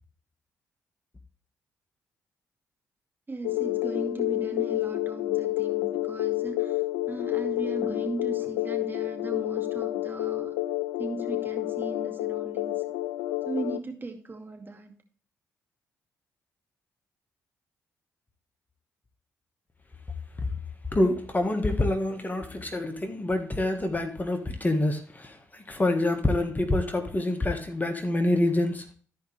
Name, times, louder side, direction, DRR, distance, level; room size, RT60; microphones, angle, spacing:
voice 1, 3.3-6.8 7.1-10.5 11.0-12.8 13.5-14.9, right 3 dB, 30° right, 3 dB, 2.3 m, -37 dB
sound 1, 3.4-13.8, left 17 dB, 80° left, 0.4 m, -29 dB
voice 2, 20.9-28.8, left 1 dB, 25° left, 6 dB, 1.5 m, -26 dB
13.0 x 5.1 x 3.3 m, 0.44 s
hypercardioid pair, 45°, 7 cm